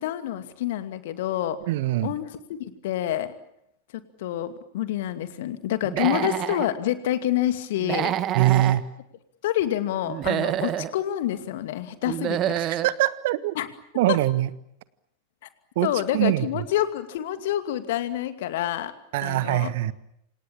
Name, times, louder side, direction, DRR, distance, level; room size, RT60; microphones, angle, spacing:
voice 1, 0.0-1.6 2.0-3.3 4.2-8.1 9.4-12.6 13.6-13.7 15.8-18.9 19.2-19.7, left 12 dB, 55° left, 9 dB, 2.5 m, -27 dB
voice 2, 1.7-2.1 6.0-6.3 8.3-8.9 12.6-13.5 13.9-14.5 15.7-16.6 19.1-19.9, right 15 dB, 50° right, 15 dB, 1.4 m, -23 dB
Human voice / Animal, 5.8-6.7 7.8-8.8 10.1-10.9 12.1-12.9, right 11 dB, 30° right, 1.6 m, -27 dB
28.0 x 27.5 x 7.3 m, 0.78 s
figure-of-eight pair, 90°, 0 cm